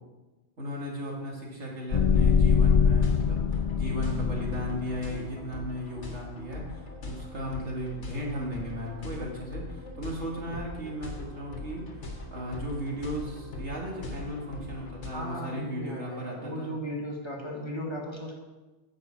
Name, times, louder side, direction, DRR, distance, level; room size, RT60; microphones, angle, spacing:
voice 1, 0.6-12.0 12.3-16.7, equal, 80° right, -2 dB, 2.5 m, -36 dB
sound 1, 1.9-5.0, left 6 dB, 55° left, 0.4 m, -23 dB
sound 2, 2.9-15.1, left 2 dB, 75° left, 1.7 m, -41 dB
voice 2, 15.1-18.3, equal, 25° left, -3 dB, 2.0 m, -36 dB
9.6 x 5.4 x 7.4 m, 1.2 s
omnidirectional pair, 1.2 m